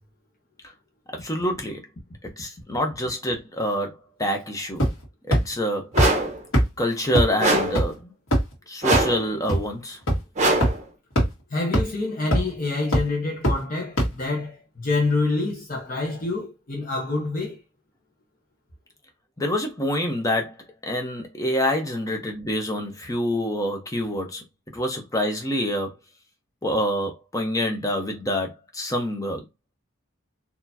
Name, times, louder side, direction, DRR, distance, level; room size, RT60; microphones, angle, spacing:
voice 1, 1.2-1.8 2.4-4.9 5.3-5.9 6.8-8.1 8.7-10.0 19.4-20.6 20.8-24.4 24.7-25.9 26.6-29.4, equal, 15° left, 0.9 m, -26 dB
sound 1, 4.8-5.0 5.3-5.4 6.0-6.1 6.5-6.6 7.1-7.2 7.7-7.8 8.3-8.5 8.9-9.0 9.5-9.6 10.1-10.2 10.6-10.7 11.1-11.3 11.7-11.8 12.3-12.5 12.9-13.0 13.4-13.5 14.0-14.1, equal, 90° left, 1.7 m, -19 dB
sound 2, 5.9-6.4 7.4-7.9 8.8-9.3 10.4-10.8, right 2 dB, 35° right, 1.1 m, -22 dB
voice 2, 11.5-17.6, left 3 dB, 40° left, 1.1 m, -27 dB
4.2 x 2.9 x 2.8 m
head